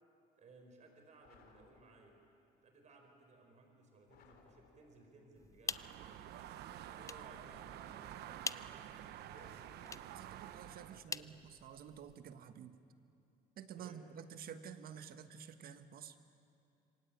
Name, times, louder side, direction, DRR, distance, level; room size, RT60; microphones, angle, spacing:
voice 1, 0.4-2.1 2.6-6.2 6.7-10.2 10.9-11.3 13.8-14.0, right 3 dB, 45° right, 4 dB, 4.7 m, -61 dB
sound 1, 1.2-2.3 4.1-5.2 6.9-8.1 9.3-10.4, left 6 dB, 65° left, 3.6 m, -66 dB
sound 2, 5.4-12.2, left 4 dB, 20° left, 0.6 m, -48 dB
sound 3, 5.7-11.0, right 12 dB, 75° right, 1.0 m, -50 dB
voice 2, 10.1-12.8 13.6-16.2, right 8 dB, 60° right, 10 dB, 1.5 m, -51 dB
27.0 x 24.0 x 8.7 m, 2.7 s
cardioid pair, 110°, 17 cm